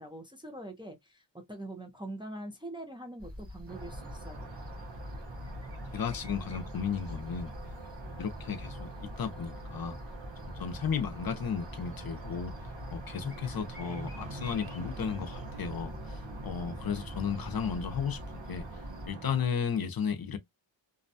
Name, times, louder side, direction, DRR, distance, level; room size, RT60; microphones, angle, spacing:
voice 1, 0.0-4.5, right 1 dB, 10° right, 0.5 m, -43 dB
sound 1, 3.2-19.1, left 1 dB, 30° right, 1.3 m, -45 dB
sound 2, 3.7-19.5, right 3 dB, 70° right, 1.0 m, -45 dB
voice 2, 5.9-7.5 8.1-8.9 9.2-10.0 10.4-12.6 12.9-15.9 16.4-18.6 19.1-20.4, left 7 dB, 50° left, 0.6 m, -34 dB
2.6 x 2.2 x 2.6 m
wide cardioid pair, 125°, 45 cm